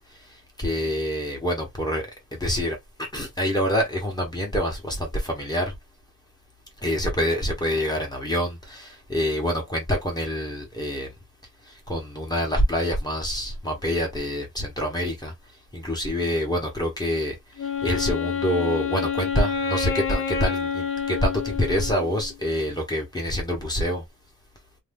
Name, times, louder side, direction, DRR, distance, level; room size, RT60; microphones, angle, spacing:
voice 1, 0.3-5.7 6.8-11.1 11.7-15.3 15.7-24.0, equal, 15° left, 1.0 m, -26 dB
Wind instrument woodwind instrument, 17.6-22.4, left 6 dB, 45° left, 0.5 m, -28 dB
2.7 x 2.4 x 3.5 m
wide cardioid pair, 175°, 30 cm